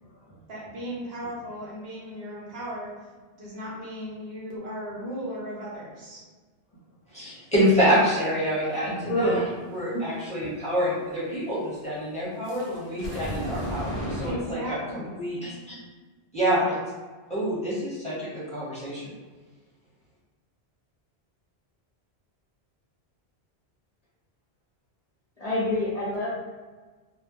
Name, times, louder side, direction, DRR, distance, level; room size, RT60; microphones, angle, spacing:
voice 1, 0.5-2.9 3.3-6.2 14.3-15.2, equal, 70° right, -5 dB, 1.0 m, -36 dB
voice 2, 7.1-9.4 9.7-15.7 16.3-16.8 17.3-19.0, equal, 5° left, -10 dB, 0.9 m, -27 dB
voice 3, 8.9-9.5 9.9-10.0 25.4-26.4, left 1 dB, 45° left, -8 dB, 0.6 m, -27 dB
sound 1, 12.4-14.3, equal, 45° right, 0.8 m, -32 dB
2.2 x 2.1 x 2.9 m, 1.4 s
omnidirectional pair, 1.1 m